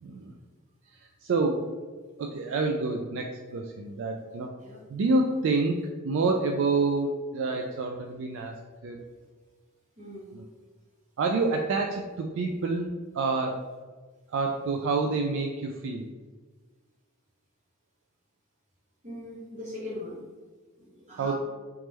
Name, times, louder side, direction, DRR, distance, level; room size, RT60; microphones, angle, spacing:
voice 1, 0.0-0.4 0.9-1.7 2.2-4.5 4.9-8.5 8.8-9.0 10.3-10.4 11.2-13.6 14.3-16.0 21.2-21.3, right 3 dB, 60° right, 3 dB, 0.3 m, -28 dB
voice 2, 10.0-10.3 19.0-20.2 20.8-21.3, left 1 dB, 35° right, -7 dB, 1.4 m, -40 dB
3.1 x 3.1 x 3.4 m, 1.4 s
head